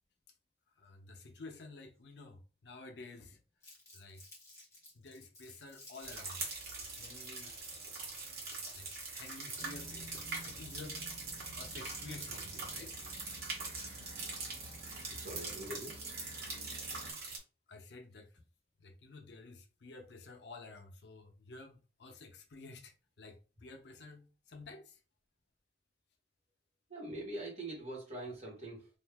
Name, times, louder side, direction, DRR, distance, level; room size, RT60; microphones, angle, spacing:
voice 1, 0.8-3.4 3.9-4.2 4.9-6.4 6.8-7.5 8.7-11.1 11.6-13.0 17.7-18.3 18.8-25.0, left 3 dB, 80° left, 0.6 m, -51 dB
Crumpling crinkling, 3.6-11.0, left 2 dB, 15° left, 1.0 m, -56 dB
sound 1, 6.0-17.4, right 3 dB, 55° right, 1.0 m, -43 dB
sound 2, 9.6-17.1, equal, 50° left, 0.8 m, -53 dB
voice 2, 15.2-16.0 26.9-28.9, right 1 dB, 35° right, 1.4 m, -43 dB
2.6 x 2.4 x 3.4 m
head